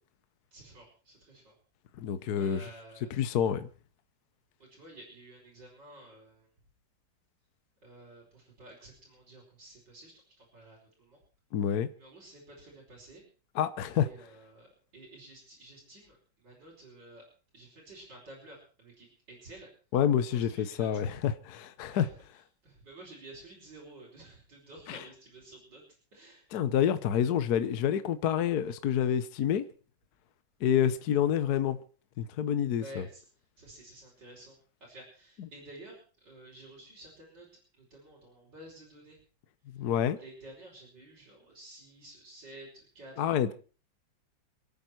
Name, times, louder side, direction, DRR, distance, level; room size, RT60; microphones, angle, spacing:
voice 1, 0.5-1.5 2.4-3.2 4.6-6.5 7.8-11.2 12.0-13.2 13.9-14.7 14.9-17.3 17.5-19.7 20.3-21.0 21.9-22.2 22.6-25.8 26.1-26.4 32.8-33.2 33.6-34.5 34.8-37.5 37.7-39.2 40.2-43.5, right 1 dB, 65° right, 5.7 m, -51 dB
voice 2, 2.0-2.6 3.2-3.7 11.5-11.9 13.5-14.1 19.9-22.1 24.9-25.0 26.5-29.6 30.6-31.8 32.2-33.0 39.7-40.2 43.2-43.5, left 9 dB, 60° left, 1.3 m, -28 dB
27.5 x 9.3 x 4.5 m
omnidirectional pair, 2.1 m